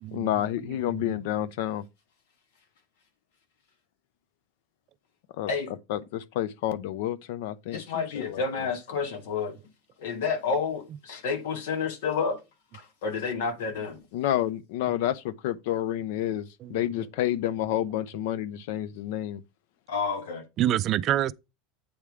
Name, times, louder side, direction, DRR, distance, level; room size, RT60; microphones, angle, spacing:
voice 1, 0.1-1.8 5.4-5.5 5.9-8.7 14.1-19.4, left 12 dB, 60° left, 0.4 m, -29 dB
voice 2, 0.8-1.2 16.6-16.8 20.6-21.3, right 12 dB, 30° right, 0.3 m, -27 dB
voice 3, 7.7-9.5 10.0-12.4 12.7-14.0 19.9-20.4, left 5 dB, 80° left, 1.5 m, -30 dB
8.6 x 3.5 x 4.7 m
supercardioid pair, 170°, 0 cm